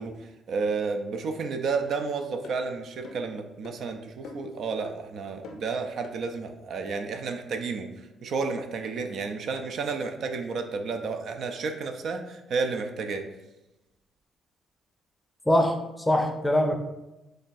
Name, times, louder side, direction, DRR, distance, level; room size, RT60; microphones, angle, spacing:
voice 1, 0.0-13.2, right 4 dB, 65° right, 5 dB, 0.4 m, -31 dB
sound 1, 1.8-2.0 2.4-2.6 3.0-3.3 3.6-3.8 4.2-4.6 4.8-5.0 5.4-5.7 6.0-6.2, left 3 dB, 80° left, 0.5 m, -43 dB
voice 2, 15.5-16.8, left 1 dB, 10° left, 4 dB, 0.5 m, -23 dB
4.2 x 3.1 x 2.5 m, 0.97 s
cardioid pair, 90°, 0 cm